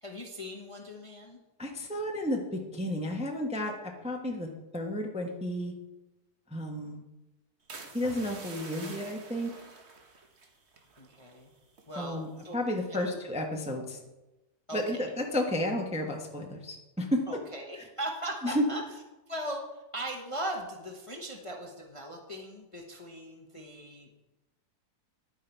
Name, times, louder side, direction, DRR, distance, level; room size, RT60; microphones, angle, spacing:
voice 1, 0.0-1.4 11.0-11.5 11.9-12.5 12.9-13.2 14.7-15.1 17.3-18.8 19.3-24.1, right 1 dB, 25° left, 1 dB, 0.9 m, -39 dB
voice 2, 1.6-4.5 4.7-5.7 6.5-7.0 7.9-9.5 12.0-12.3 12.5-14.0 14.7-17.2 18.4-18.6, left 1 dB, 5° right, 1 dB, 0.9 m, -32 dB
sound 1, 7.7-11.4 11.7-12.1 12.5-12.8, right 3 dB, 45° right, 1.3 m, -47 dB
10.5 x 9.4 x 4.5 m, 1.1 s
omnidirectional pair, 1.8 m